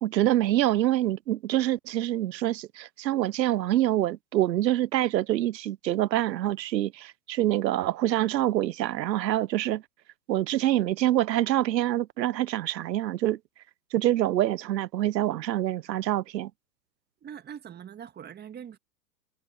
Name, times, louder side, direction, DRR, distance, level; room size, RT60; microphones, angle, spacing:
voice 1, 0.0-9.8 10.3-13.4 13.9-16.5, right 13 dB, 80° right, 0.7 m, -26 dB
voice 2, 17.2-18.8, right 8 dB, 20° right, 1.7 m, -42 dB
hypercardioid pair, 115°, 49 cm